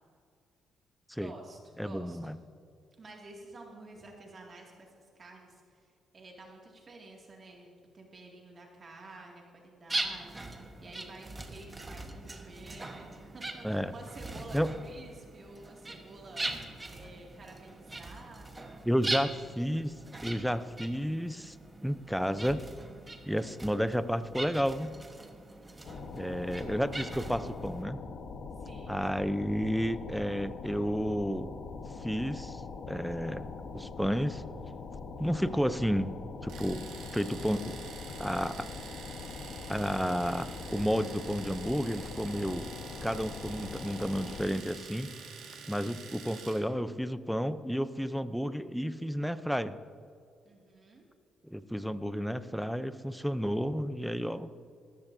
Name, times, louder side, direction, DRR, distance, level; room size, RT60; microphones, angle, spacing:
voice 1, 1.1-2.2 3.0-18.8 28.6-29.0 50.4-51.1, right 2 dB, 40° right, -1 dB, 2.3 m, -51 dB
voice 2, 1.8-2.4 13.6-13.9 14.5-14.7 18.8-19.9 20.2-21.6 21.8-22.6 23.2-25.0 26.1-28.0 28.9-31.5 32.0-32.6 32.9-33.5 33.7-34.4 35.2-36.1 36.4-36.9 37.1-37.8 38.2-38.7 39.7-42.7 43.0-45.1 45.7-49.7 51.4-54.5, equal, ahead, 13 dB, 0.6 m, -31 dB
sound 1, 9.9-27.8, right 2 dB, 20° right, 1.2 m, -41 dB
sound 2, 25.8-44.4, left 4 dB, 65° left, 1.1 m, -43 dB
Domestic sounds home sounds, 36.5-46.7, right 6 dB, 85° right, 2.2 m, -47 dB
18.5 x 14.5 x 2.7 m, 2.3 s
cardioid pair, 90°, 0 cm